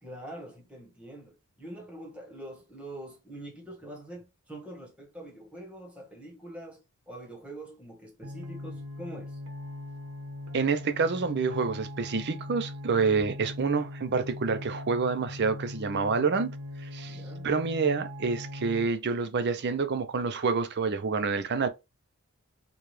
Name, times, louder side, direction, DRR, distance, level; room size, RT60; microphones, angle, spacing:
voice 1, 0.0-9.4 17.0-17.5, right 1 dB, 5° right, 1.2 m, -44 dB
sound 1, 8.2-18.9, left 1 dB, 70° right, 1.0 m, -40 dB
voice 2, 10.5-16.5 16.8-17.2 17.4-21.7, right 4 dB, 50° right, 0.5 m, -28 dB
4.7 x 2.4 x 3.1 m
head